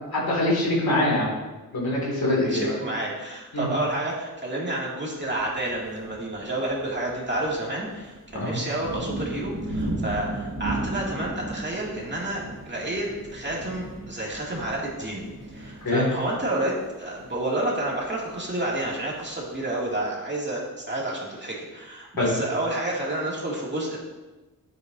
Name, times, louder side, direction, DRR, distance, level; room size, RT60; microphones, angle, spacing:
voice 1, 0.1-1.3 1.7-2.8 3.5-3.7 8.3-8.5 15.8-16.0 22.2-22.3, left 1 dB, 90° left, -5 dB, 2.6 m, -24 dB
voice 2, 2.3-15.2 15.5-24.0, right 1 dB, 30° right, -4 dB, 2.3 m, -30 dB
sound 1, 5.3-20.1, right 2 dB, 60° right, 2.8 m, -36 dB
10.5 x 8.1 x 2.7 m, 1.2 s
wide cardioid pair, 90°, 35 cm